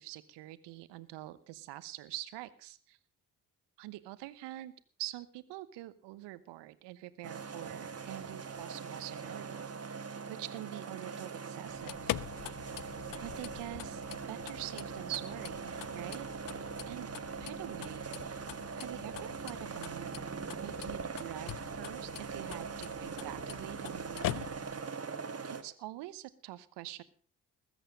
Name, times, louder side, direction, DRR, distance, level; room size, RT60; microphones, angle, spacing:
voice 1, 0.0-3.0 3.8-4.7 5.0-9.7 10.3-12.2 13.2-16.3 16.9-17.1 17.4-20.1 20.6-24.8 25.4-27.0, right 16 dB, 70° right, 16 dB, 1.0 m, -45 dB
sound 1, 7.2-25.6, right 5 dB, 35° right, 1.7 m, -42 dB
sound 2, 11.7-24.9, left 15 dB, 50° left, 0.6 m, -44 dB
20.0 x 8.2 x 5.2 m, 0.43 s
hypercardioid pair, 40°, 43 cm